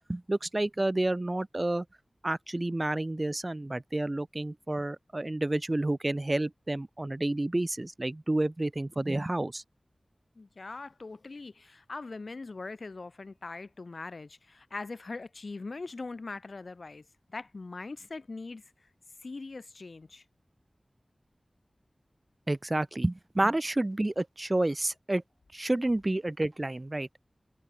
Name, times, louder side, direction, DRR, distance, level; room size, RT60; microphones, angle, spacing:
voice 1, 0.1-1.9 2.2-9.6 22.5-25.2 25.5-27.1, right 1 dB, 35° right, 3.5 m, -30 dB
voice 2, 10.4-18.9 19.2-20.2, left 3 dB, 75° left, 3.7 m, -41 dB
cardioid pair, 40°, 0 cm